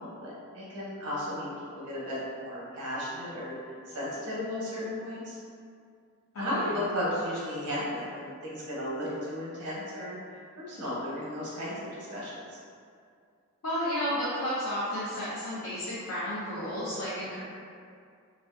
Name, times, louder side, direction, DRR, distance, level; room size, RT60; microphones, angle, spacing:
voice 1, 0.0-3.5 3.9-5.4 6.4-10.2 10.6-12.6, left 1 dB, 90° right, -7 dB, 0.8 m, -34 dB
voice 2, 6.3-6.8 13.6-17.4, equal, 75° left, -10 dB, 0.5 m, -32 dB
2.4 x 2.3 x 2.3 m, 2.3 s
head